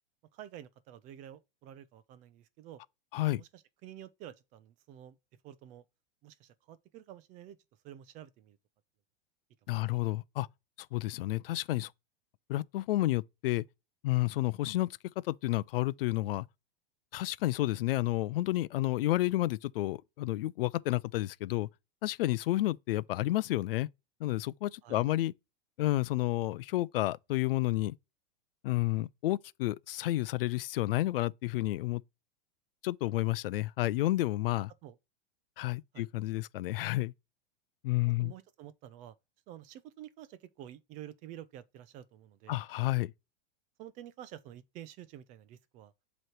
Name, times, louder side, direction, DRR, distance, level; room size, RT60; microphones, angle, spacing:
voice 1, 0.3-2.8 3.3-5.2 5.4-5.8 6.2-7.6 7.8-8.6 9.7-10.0 24.8-25.1 34.8-35.0 35.9-36.1 38.2-39.1 39.5-42.6 43.8-45.9, right 11 dB, 25° right, 0.5 m, -50 dB
voice 2, 9.7-10.5 10.9-11.9 12.5-13.6 14.0-15.0 15.3-16.5 17.1-21.7 22.0-23.9 24.2-25.3 25.8-27.9 28.6-32.0 32.8-34.7 35.6-37.1 37.8-38.3 42.5-43.1, left 17 dB, 75° left, 0.5 m, -30 dB
7.8 x 3.1 x 4.3 m
supercardioid pair, 155°, 29 cm